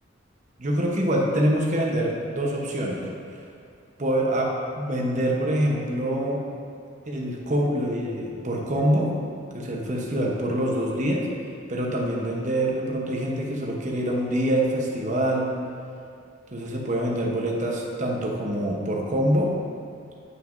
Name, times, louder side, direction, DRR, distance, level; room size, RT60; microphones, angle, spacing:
voice 1, 0.6-3.1 4.0-6.5 7.1-9.2 9.5-11.3 11.7-15.5 16.5-19.6, right 1 dB, 40° right, -1 dB, 0.9 m, -25 dB
9.6 x 5.7 x 2.6 m, 2.3 s
head